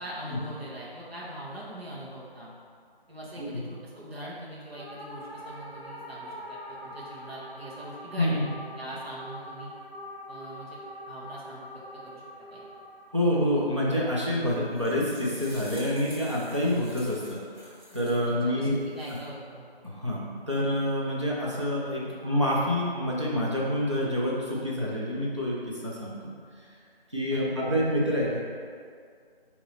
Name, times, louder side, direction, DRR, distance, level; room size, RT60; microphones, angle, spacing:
voice 1, 0.0-2.5 3.1-8.4 8.8-9.7 10.3-10.8 11.1-11.7 12.0-12.2 12.5-12.6 18.2-19.7 27.2-27.5, right 1 dB, 80° right, -7 dB, 1.3 m, -42 dB
sound 1, 4.7-15.2 22.2-22.6, equal, 15° left, 0.8 m, -44 dB
voice 2, 13.1-18.8 19.8-20.2 20.5-26.2 27.1-28.4, left 1 dB, 30° right, -5 dB, 0.6 m, -27 dB
sound 2, 14.5-18.3 18.7-19.3, equal, 45° right, 1.5 m, -49 dB
4.1 x 2.9 x 4.1 m, 2.1 s
figure-of-eight pair, 170°, 30 cm